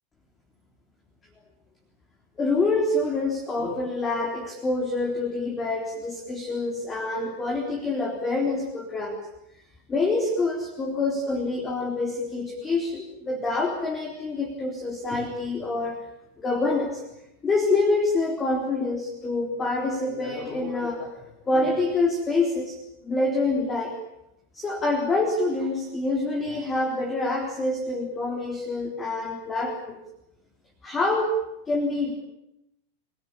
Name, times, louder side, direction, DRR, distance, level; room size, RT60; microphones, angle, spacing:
voice 1, 2.4-9.3 9.9-16.1 16.4-17.0 17.4-24.0 24.5-30.0 30.8-31.4 31.7-32.2, left 2 dB, 20° left, 2 dB, 3.8 m, -26 dB
27.0 x 18.5 x 8.7 m, 0.85 s
figure-of-eight pair, 90°, 0 cm